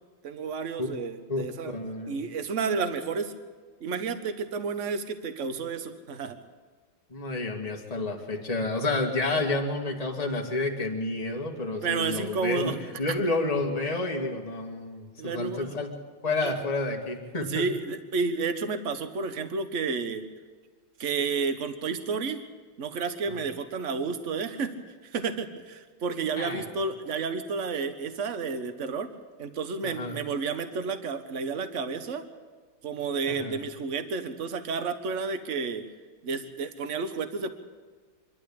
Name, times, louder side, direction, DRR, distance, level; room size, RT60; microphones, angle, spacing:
voice 1, 0.2-1.7 2.1-3.3 3.8-6.4 11.8-12.8 13.1-13.2 15.2-15.8 16.4-16.5 17.5-20.2 21.0-22.4 22.8-24.8 25.1-29.1 29.4-32.2 32.8-35.9 36.2-37.5, right 5 dB, 40° right, 9 dB, 1.4 m, -31 dB
voice 2, 1.3-2.2 7.1-12.7 13.0-16.0 16.2-17.7 23.3-23.4 26.4-26.6 29.8-30.2 33.3-33.6, left 2 dB, 20° left, 1 dB, 2.0 m, -30 dB
25.5 x 12.0 x 8.6 m, 1.5 s
omnidirectional pair, 2.2 m